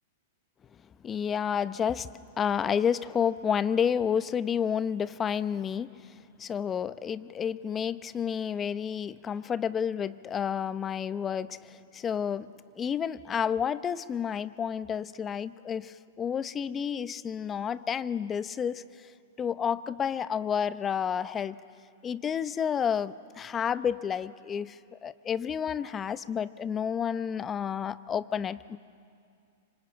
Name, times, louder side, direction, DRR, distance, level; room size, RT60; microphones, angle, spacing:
voice 1, 1.0-2.1 2.4-19.1 19.4-21.6 22.0-28.8, left 7 dB, 25° left, 15 dB, 0.8 m, -30 dB
25.5 x 25.5 x 8.9 m, 2.3 s
hypercardioid pair, 105°, 0 cm